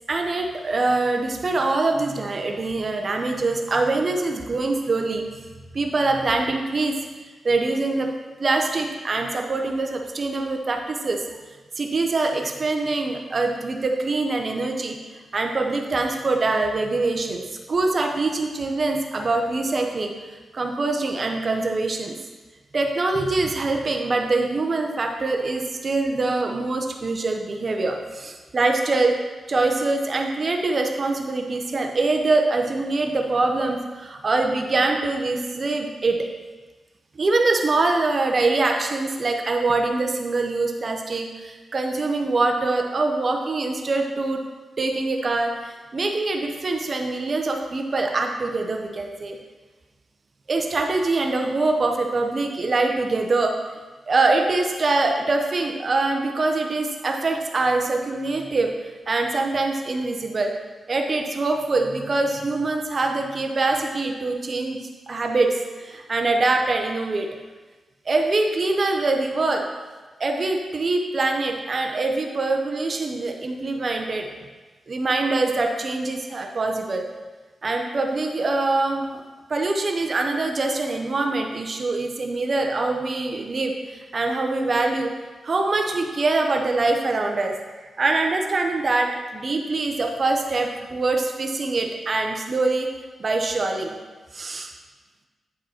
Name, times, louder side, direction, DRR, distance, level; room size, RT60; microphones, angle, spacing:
voice 1, 0.1-5.2 5.7-6.9 7.4-8.1 8.4-11.2 11.8-17.4 17.7-22.1 22.7-29.1 29.5-36.2 37.2-44.4 44.8-49.4 50.5-53.6 54.1-58.7 59.1-60.5 60.9-64.8 65.1-67.3 68.1-69.7 70.2-74.3 74.9-77.0 77.6-79.2 79.5-85.1 85.4-92.9 93.2-94.0 94.3-94.7, right 3 dB, 50° right, 3 dB, 0.8 m, -24 dB
9.2 x 5.0 x 4.4 m, 1.3 s
cardioid pair, 70°, 0 cm